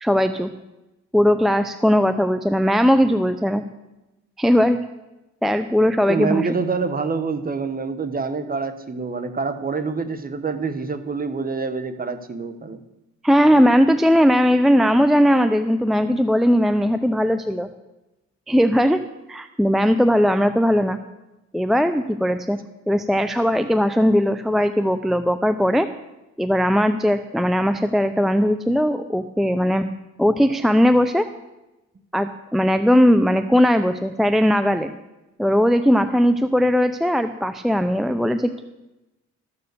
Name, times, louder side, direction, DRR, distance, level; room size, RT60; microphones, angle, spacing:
voice 1, 0.0-0.5 1.1-3.6 4.4-4.8 5.4-6.5 13.2-17.7 18.5-19.0 19.3-21.0 21.5-22.6 22.9-25.9 26.4-29.9 30.2-31.3 32.1-34.9 35.4-38.6, equal, ahead, 10 dB, 0.5 m, -18 dB
voice 2, 6.1-12.8, right 4 dB, 30° right, 11 dB, 1.2 m, -26 dB
13.5 x 7.0 x 6.8 m, 0.98 s
cardioid pair, 90°, 30 cm